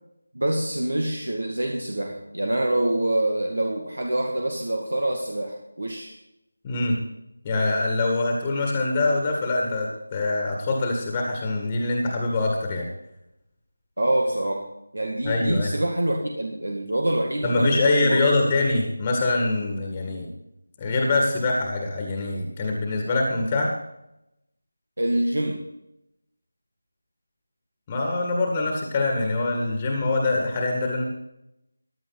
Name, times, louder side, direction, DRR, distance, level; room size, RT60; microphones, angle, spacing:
voice 1, 0.3-6.1 14.0-14.6 14.9-18.3 25.0-25.6, right 1 dB, 70° right, 2 dB, 2.1 m, -25 dB
voice 2, 6.6-7.0 7.4-12.9 15.2-15.7 17.4-20.3 20.8-23.7 27.9-31.0, left 2 dB, 20° left, 1 dB, 1.9 m, -24 dB
15.5 x 10.5 x 4.1 m, 0.85 s
figure-of-eight pair, 165°, 0 cm